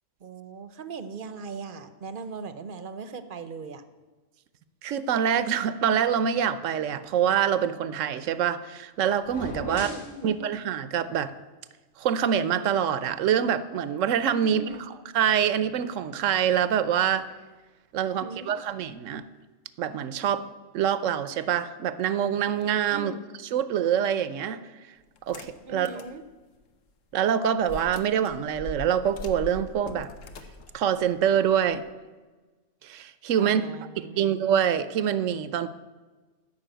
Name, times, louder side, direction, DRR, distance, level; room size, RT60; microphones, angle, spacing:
voice 1, 0.2-3.8 9.7-10.3 14.4-14.9 18.0-18.5 22.9-23.2 25.6-26.2 33.4-34.3, right 4 dB, 50° right, 11 dB, 0.8 m, -39 dB
voice 2, 4.8-9.9 10.2-11.3 12.0-17.3 17.9-19.2 19.8-20.4 20.7-23.1 23.5-24.6 25.3-25.9 27.1-30.1 30.7-31.8 32.8-33.6 34.0-35.7, right 9 dB, 75° right, 14 dB, 1.1 m, -25 dB
sound 1, 9.2-10.2, left 1 dB, 45° left, 1.5 m, -37 dB
sound 2, 25.2-26.2 26.6-26.7 27.6-31.9, left 2 dB, 75° left, 1.3 m, -41 dB
13.0 x 6.0 x 9.0 m, 1.3 s
omnidirectional pair, 1.3 m